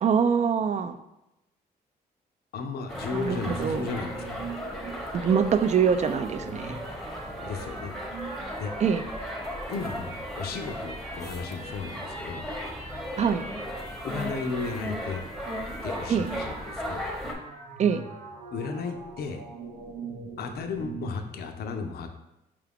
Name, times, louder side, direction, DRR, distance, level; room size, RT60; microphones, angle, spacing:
voice 1, 0.0-1.0 3.1-3.8 5.1-6.8 8.8-9.0 13.2-13.4 16.1-16.3 17.8-18.0, right 7 dB, 45° right, 10 dB, 0.4 m, -24 dB
voice 2, 2.5-4.4 7.4-7.9 8.6-8.7 9.7-12.5 14.0-15.3 15.8-17.1 18.5-19.4 20.4-22.2, left 4 dB, 65° left, 6 dB, 0.5 m, -34 dB
sound 1, 2.9-17.3, equal, ahead, 0.8 m, -36 dB
sound 2, 3.2-21.3, right 3 dB, 90° right, 0.7 m, -42 dB
4.7 x 2.4 x 3.5 m, 0.91 s
cardioid pair, 70°, 17 cm